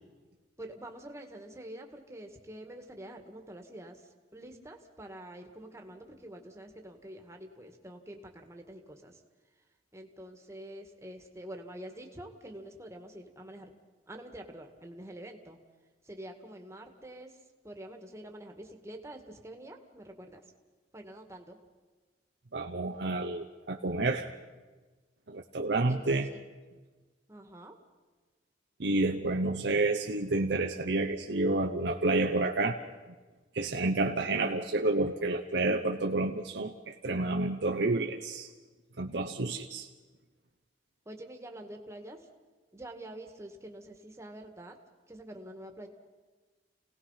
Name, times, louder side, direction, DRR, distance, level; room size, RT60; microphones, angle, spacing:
voice 1, 0.6-9.2 9.6-9.7 9.9-13.7 14.1-15.6 16.0-20.4 20.9-21.6 25.9-26.4 27.3-27.8 41.1-42.3 42.7-44.8 45.1-45.9, right 1 dB, 15° right, 4 dB, 1.9 m, -46 dB
voice 2, 22.5-24.3 25.3-26.3 28.8-32.8 33.5-38.5 39.0-39.9, right 2 dB, 70° right, 2 dB, 0.9 m, -29 dB
28.5 x 18.0 x 5.8 m, 1.3 s
head